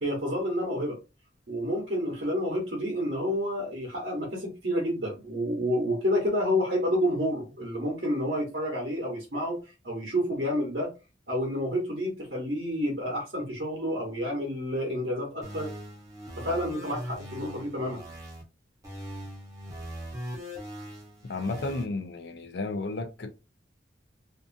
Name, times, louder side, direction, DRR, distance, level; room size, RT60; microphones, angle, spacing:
voice 1, 0.0-1.0 1.5-9.6 9.8-10.9 11.3-15.7 16.4-18.0, equal, 60° right, 1.0 m, -29 dB
sound 1, 15.4-18.4 18.8-21.8, equal, 20° right, 0.8 m, -40 dB
voice 2, 21.2-23.3, left 3 dB, 60° left, 0.5 m, -33 dB
2.6 x 2.4 x 2.5 m
head